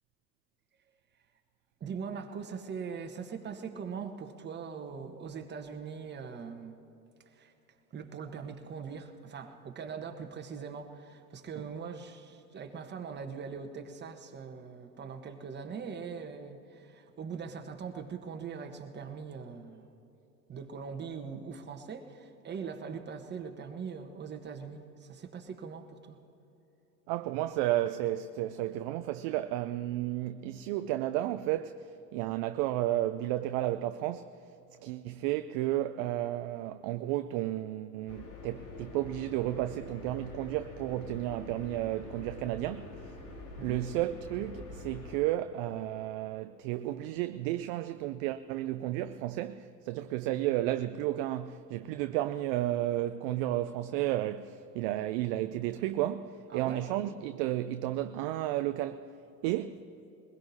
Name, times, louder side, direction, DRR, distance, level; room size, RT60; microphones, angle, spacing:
voice 1, 1.8-6.8 7.3-7.5 7.9-19.9 20.5-26.2 43.6-43.9 56.5-56.9, right 6 dB, 20° right, 1.3 m, -41 dB
voice 2, 27.1-34.3 34.8-43.2 43.6-59.0 59.4-59.8, right 14 dB, 40° right, 0.4 m, -32 dB
sound 1, 38.1-45.2, left 3 dB, 40° left, 2.2 m, -46 dB
22.0 x 21.0 x 2.8 m
figure-of-eight pair, 85°, 48 cm